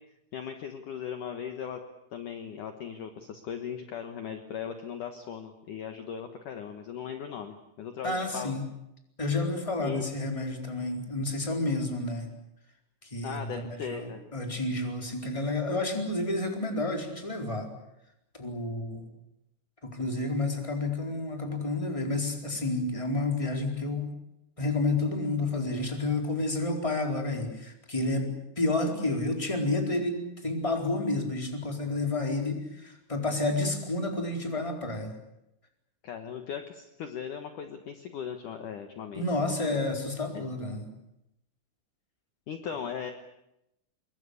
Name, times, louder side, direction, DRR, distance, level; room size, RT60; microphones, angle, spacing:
voice 1, 0.3-1.8 2.1-8.5 9.8-10.1 13.2-14.2 36.0-39.8 40.3-40.4 42.5-43.1, left 7 dB, 70° left, 6 dB, 2.0 m, -38 dB
voice 2, 8.0-8.6 9.2-12.3 13.0-17.7 18.3-19.1 19.8-24.1 24.6-28.3 28.6-35.1 39.1-40.9, left 2 dB, 5° left, 3 dB, 3.5 m, -30 dB
26.0 x 22.5 x 8.5 m, 0.85 s
omnidirectional pair, 5.8 m